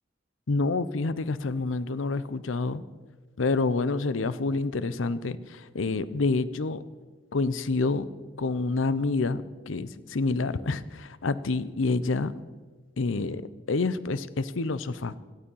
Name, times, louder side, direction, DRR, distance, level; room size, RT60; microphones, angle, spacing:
voice 1, 0.5-2.8 3.4-6.8 7.3-8.0 8.4-12.3 13.0-13.4 13.7-15.2, left 3 dB, 90° left, 16 dB, 0.7 m, -28 dB
17.5 x 12.5 x 5.5 m, 1.3 s
head